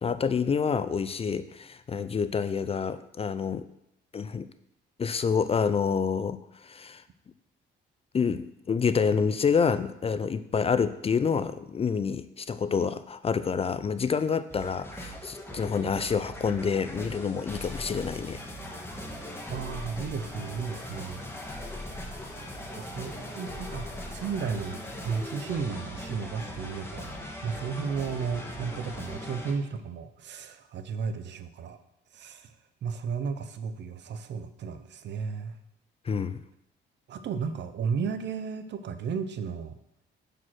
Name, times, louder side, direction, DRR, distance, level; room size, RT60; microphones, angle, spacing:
voice 1, 0.0-3.7 4.1-4.5 5.0-7.0 8.1-18.4 36.1-36.4, left 6 dB, 30° left, 13 dB, 0.4 m, -28 dB
sound 1, 14.5-29.5, left 1 dB, 10° left, 1.4 m, -39 dB
voice 2, 19.2-21.8 22.7-27.1 27.4-31.8 32.1-32.5 32.8-35.6 37.1-39.8, right 6 dB, 65° right, 10 dB, 0.7 m, -34 dB
6.2 x 5.1 x 5.7 m, 0.81 s
cardioid pair, 90°, 20 cm